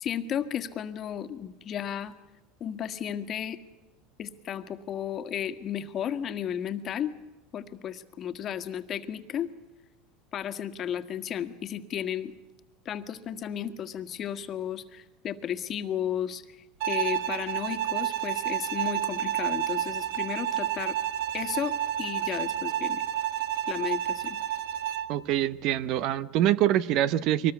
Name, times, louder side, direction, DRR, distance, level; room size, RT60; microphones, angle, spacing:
voice 1, 0.0-2.1 2.6-3.6 4.2-7.1 7.5-9.5 10.3-12.3 12.8-21.0 21.3-23.0 23.7-24.4, left 9 dB, 35° left, 10 dB, 1.6 m, -34 dB
Bowed string instrument, 16.8-25.2, right 11 dB, 70° right, 1.6 m, -30 dB
voice 2, 25.1-27.5, right 12 dB, 55° right, 17 dB, 0.9 m, -25 dB
23.5 x 19.5 x 8.2 m, 1.1 s
supercardioid pair, 130°, 0 cm